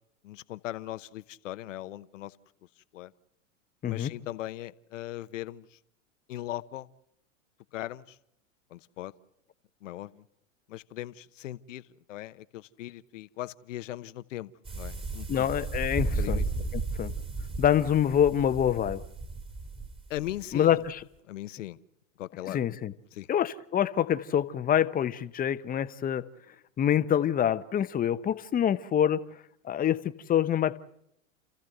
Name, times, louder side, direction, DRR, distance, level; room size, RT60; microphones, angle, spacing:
voice 1, 0.2-2.4 2.9-3.1 3.8-5.8 6.3-6.9 7.7-8.2 8.7-9.1 9.8-10.2 10.7-11.8 12.1-15.5 16.2-16.4 20.1-20.8 21.3-21.8 22.2-22.6 23.1-23.3, left 14 dB, 70° left, 1.1 m, -39 dB
sound 1, 14.7-20.5, right 3 dB, 15° right, 2.4 m, -34 dB
voice 2, 15.3-16.4 16.7-17.1 17.6-19.0 20.5-21.0 22.5-22.9 23.3-26.3 26.8-30.8, left 9 dB, 20° left, 0.9 m, -26 dB
30.0 x 14.5 x 7.9 m
hypercardioid pair, 110°, 39 cm